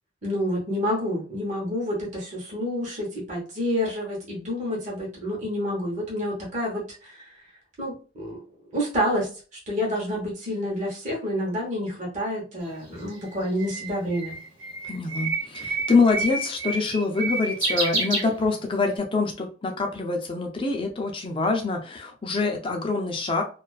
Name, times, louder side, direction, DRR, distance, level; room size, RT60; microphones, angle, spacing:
voice 1, 0.2-7.2 7.8-8.4 8.7-9.3 9.7-14.4, equal, 40° right, -4 dB, 0.9 m, -28 dB
Bird, 12.7-18.9, right 3 dB, 75° right, 1.1 m, -29 dB
voice 2, 14.8-23.4, left 3 dB, 25° left, 3 dB, 0.4 m, -25 dB
2.3 x 2.3 x 2.3 m, 0.37 s
head